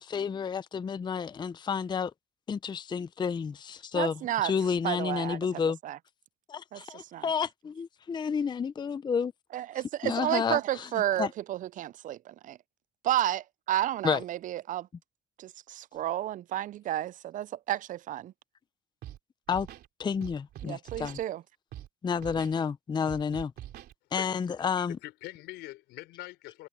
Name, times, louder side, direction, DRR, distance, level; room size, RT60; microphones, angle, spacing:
voice 1, 0.0-2.1 2.5-5.8 6.5-6.9 7.2-9.3 10.0-10.9 11.2-11.3 14.0-14.2 19.5-19.7 20.0-21.2 22.0-23.5 24.1-25.0, left 6 dB, 25° left, 0.5 m, -30 dB
voice 2, 3.9-4.5 4.8-6.0 6.7-6.8 7.1-7.3 9.5-12.6 13.0-14.9 15.4-18.3 20.6-21.4, right 12 dB, 50° right, 0.4 m, -31 dB
Scratching (performance technique), 19.0-19.2 19.5-19.9 20.2-21.2 21.7-21.9 22.2-22.6 23.1-23.9, right 12 dB, 70° right, 3.3 m, -44 dB
voice 3, 24.2-24.5 24.8-26.7, left 18 dB, 90° left, 5.1 m, -43 dB
cardioid pair, 110°, 17 cm